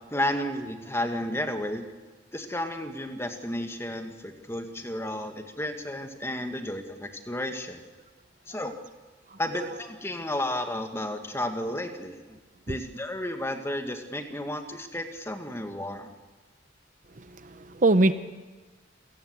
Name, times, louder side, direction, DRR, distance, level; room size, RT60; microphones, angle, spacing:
voice 1, 0.1-1.8 2.3-7.8 8.5-8.7 9.4-12.4 12.7-16.1, left 1 dB, 15° left, 6 dB, 1.8 m, -32 dB
voice 2, 9.3-9.8 12.7-12.8 17.1-18.1, right 2 dB, 45° right, 12 dB, 0.8 m, -25 dB
28.5 x 16.5 x 8.1 m, 1.3 s
head